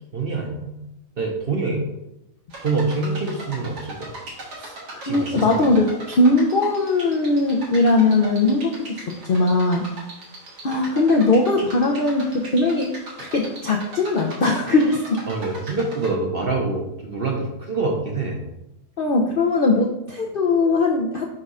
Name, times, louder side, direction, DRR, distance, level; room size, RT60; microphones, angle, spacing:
voice 1, 0.1-0.8 1.2-1.8 2.6-4.1 5.0-5.7 15.3-18.4, right 3 dB, 50° right, 1 dB, 0.8 m, -25 dB
sound 1, 2.5-16.1, right 2 dB, 85° right, 2.2 m, -39 dB
voice 2, 4.6-9.9 10.6-12.9 13.2-15.2 19.0-21.2, left 2 dB, 60° left, 0 dB, 0.6 m, -20 dB
5.4 x 3.6 x 5.4 m, 0.91 s
omnidirectional pair, 1.7 m